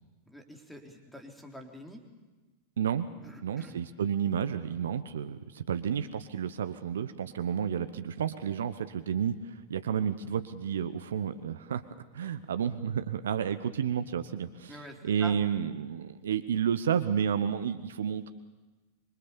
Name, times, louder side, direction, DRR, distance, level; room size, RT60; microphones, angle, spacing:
voice 1, 0.3-2.0 3.2-3.8 14.7-15.4, equal, ahead, 2 dB, 3.7 m, -46 dB
voice 2, 2.8-3.1 3.4-9.3 9.7-11.8 12.1-14.7 15.0-18.3, right 8 dB, 65° right, 11 dB, 1.0 m, -31 dB
26.5 x 23.0 x 7.0 m, 1.2 s
figure-of-eight pair, 90°, 0 cm